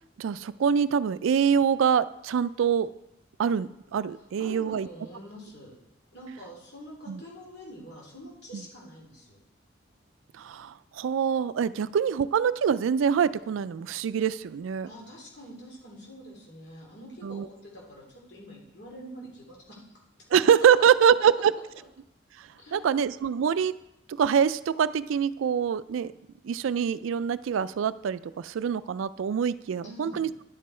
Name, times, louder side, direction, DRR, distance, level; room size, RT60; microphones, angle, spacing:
voice 1, 0.2-2.9 3.4-4.9 7.1-7.2 10.4-14.9 17.2-17.5 20.3-21.5 22.7-23.7 24.2-26.1 26.4-30.3, right 7 dB, 90° right, 16 dB, 0.3 m, -24 dB
voice 2, 4.2-5.8 6.1-9.4 14.9-19.8 21.3-21.4 22.6-22.9 29.8-30.2, equal, 60° left, -3 dB, 2.7 m, -46 dB
10.5 x 7.4 x 4.3 m, 0.88 s
head